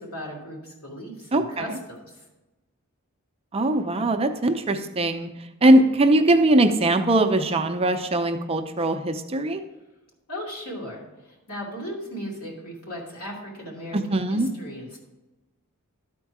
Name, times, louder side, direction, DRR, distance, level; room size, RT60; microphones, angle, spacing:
voice 1, 0.0-2.0 10.3-15.0, equal, 80° left, -3 dB, 2.8 m, -37 dB
voice 2, 1.3-1.7 3.5-5.3 5.6-9.6 13.9-14.5, right 1 dB, 25° right, 7 dB, 0.5 m, -21 dB
12.0 x 4.5 x 4.7 m, 1.1 s
head